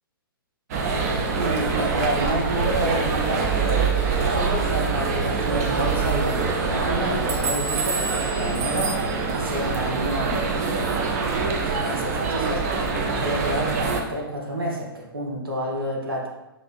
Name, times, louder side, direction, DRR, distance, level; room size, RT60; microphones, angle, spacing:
sound 1, 0.7-14.0, right 4 dB, 40° right, 0.5 m, -24 dB
voice 1, 1.4-10.7 11.3-16.3, right 1 dB, 70° right, -2 dB, 1.0 m, -29 dB
5.3 x 2.7 x 2.5 m, 0.94 s
figure-of-eight pair, 120°, 12 cm